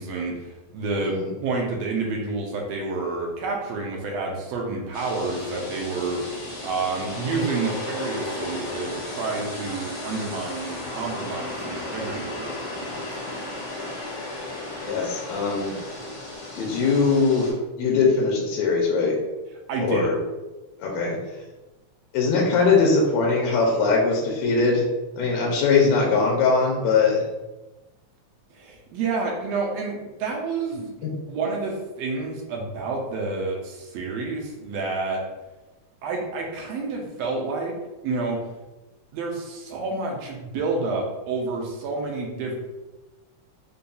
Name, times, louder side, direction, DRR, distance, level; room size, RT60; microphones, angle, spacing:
voice 1, 0.0-6.3 6.6-13.0 19.7-20.1 28.5-30.9 31.3-35.2 36.0-37.8 38.0-38.4 39.1-42.6, right 3 dB, 75° right, 0 dB, 1.6 m, -29 dB
voice 2, 1.0-1.3 14.8-15.7 16.6-17.5 17.8-19.1 19.8-20.1 20.8-21.2 22.1-24.8 25.1-27.2 31.0-31.1, left 4 dB, 80° left, -2 dB, 1.9 m, -21 dB
sound 1, 4.9-17.5, left 2 dB, 55° left, 2.1 m, -34 dB
5.2 x 2.7 x 2.3 m, 1.1 s
omnidirectional pair, 3.3 m